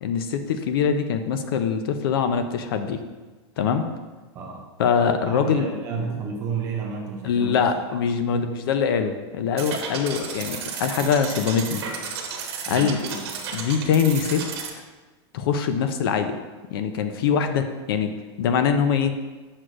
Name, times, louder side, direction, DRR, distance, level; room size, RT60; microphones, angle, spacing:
voice 1, 0.0-3.0 3.6-3.9 4.8-5.7 7.2-11.8 12.7-13.2 13.5-14.4 15.3-16.4 16.7-19.1, left 6 dB, 55° left, 8 dB, 0.5 m, -23 dB
voice 2, 5.2-7.6 7.9-8.5 12.7-13.3, right 5 dB, 20° right, 0 dB, 0.5 m, -32 dB
sound 1, 9.6-14.7, right 6 dB, 65° right, 1.2 m, -33 dB
7.8 x 6.3 x 2.5 m, 1.3 s
supercardioid pair, 175°, 14 cm